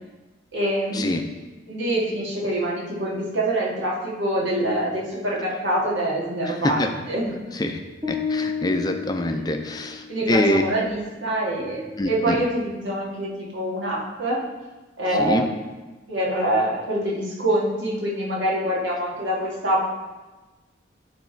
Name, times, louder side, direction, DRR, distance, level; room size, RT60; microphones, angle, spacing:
voice 1, 0.5-1.3 1.7-7.3 9.3-9.5 10.1-14.4 15.0-15.5 16.1-19.8, right 1 dB, 80° right, -4 dB, 1.8 m, -25 dB
sound 1, 8.0-10.2, left 5 dB, 25° right, 0.8 m, -30 dB
voice 2, 8.1-10.6 12.0-12.4 15.2-15.4, left 1 dB, 20° left, 5 dB, 0.4 m, -24 dB
9.5 x 3.5 x 4.5 m, 1.2 s
head